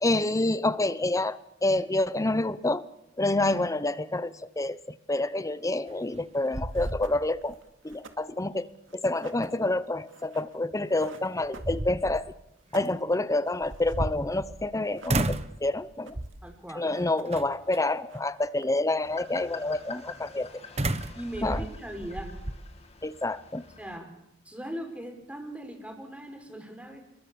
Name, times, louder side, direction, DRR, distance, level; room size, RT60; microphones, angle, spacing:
voice 1, 0.0-2.9 3.2-4.8 5.1-7.6 7.8-12.3 12.7-16.2 16.7-20.6 21.4-21.6 23.0-23.6, left 2 dB, 15° left, 15 dB, 0.9 m, -28 dB
sound 1, 5.9-6.2 6.5-7.5 7.9-8.0 10.7-10.8 11.4-12.3 13.6-14.7 15.1-15.6 16.1-16.5 17.3-17.8 20.8-22.6, right 2 dB, 35° right, 1.2 m, -32 dB
sound 2, 6.3-6.4 6.7-12.2 12.5-14.1 14.3-14.4 14.7-15.6 15.9-16.5 16.7-17.5 17.7-19.0, right 3 dB, 70° right, 2.5 m, -51 dB
voice 2, 16.4-16.9 21.1-22.3 23.8-24.1 24.5-27.0, right 1 dB, 5° right, 4 dB, 5.3 m, -39 dB
sound 3, 19.0-24.0, left 5 dB, 30° left, 2.5 m, -46 dB
29.0 x 22.0 x 7.2 m, 0.83 s
head